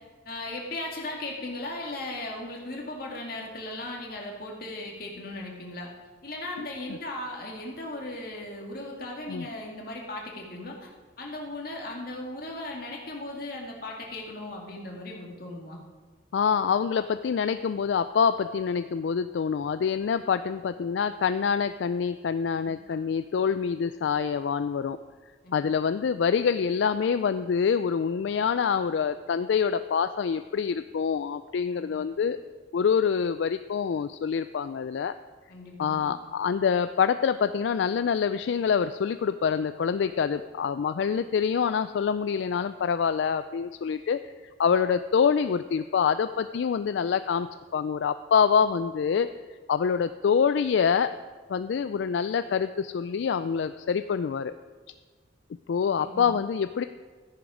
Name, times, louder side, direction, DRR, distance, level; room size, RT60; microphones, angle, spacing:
voice 1, 0.2-5.9 6.2-10.9 11.2-15.8 25.4-25.7 31.8-32.0 35.5-36.1 56.0-56.3, left 2 dB, 50° left, -1 dB, 2.2 m, -37 dB
voice 2, 16.3-25.0 25.5-32.4 32.7-35.1 35.8-44.3 44.6-47.5 47.7-49.3 49.7-51.1 51.5-54.5 55.7-56.8, left 6 dB, 75° left, 11 dB, 0.3 m, -26 dB
13.5 x 10.0 x 5.0 m, 1.5 s
head